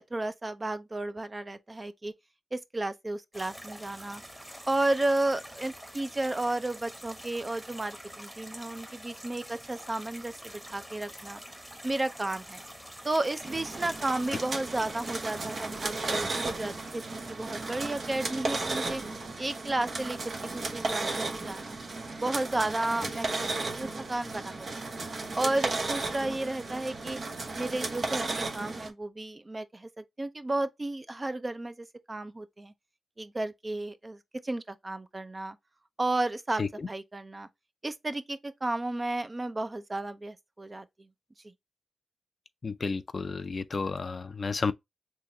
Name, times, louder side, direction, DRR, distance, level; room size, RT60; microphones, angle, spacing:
voice 1, 0.0-2.1 2.5-4.2 4.7-11.4 11.8-12.6 13.0-19.0 19.4-21.8 22.2-23.5 23.8-24.9 25.4-27.2 27.5-32.7 33.2-35.6 36.0-36.6 36.9-37.5 37.8-41.1 41.4-41.5, right 2 dB, 30° right, 0.5 m, -33 dB
sound 1, 3.3-18.1, equal, 10° right, 1.1 m, -46 dB
sound 2, 13.4-28.9, right 3 dB, 65° right, 0.9 m, -34 dB
voice 2, 42.6-44.7, left 4 dB, 55° left, 0.4 m, -31 dB
3.7 x 2.8 x 2.7 m
cardioid pair, 45°, 0 cm